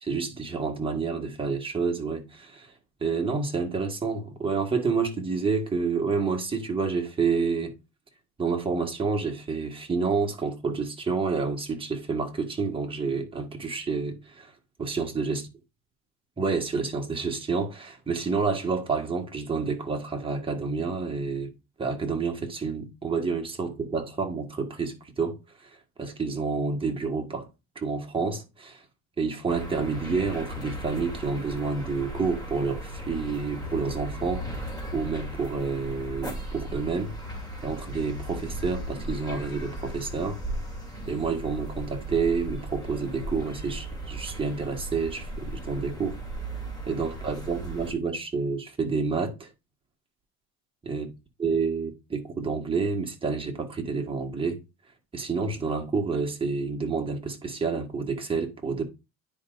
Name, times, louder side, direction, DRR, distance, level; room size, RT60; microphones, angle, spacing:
voice 1, 0.0-2.7 3.0-7.7 8.4-14.5 14.8-15.4 16.4-21.5 21.8-27.5 27.7-28.8 29.2-37.1 37.6-40.4 41.1-46.2 46.9-49.5 50.8-51.1 51.4-54.6 55.1-58.8, right 4 dB, 15° right, 1.5 m, -29 dB
sound 1, 29.5-47.9, right 1 dB, 10° left, 2.7 m, -36 dB
9.9 x 5.0 x 2.5 m
cardioid pair, 130°, 33 cm